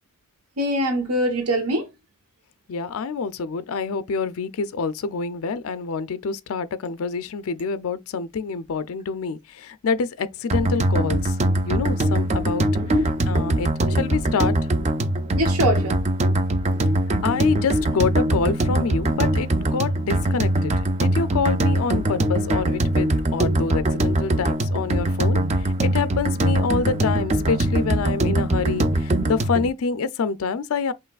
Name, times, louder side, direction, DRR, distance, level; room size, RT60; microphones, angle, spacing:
voice 1, 0.6-1.9 12.8-13.0 15.3-16.0, equal, 85° right, 1.1 m, -23 dB
voice 2, 2.7-11.3 11.6-12.7 13.3-14.5 17.2-20.7 21.0-25.4 25.8-30.9, left 5 dB, 65° left, 0.4 m, -26 dB
sound 1, 10.5-29.7, right 1 dB, 30° right, 0.5 m, -22 dB
5.6 x 3.1 x 2.3 m
head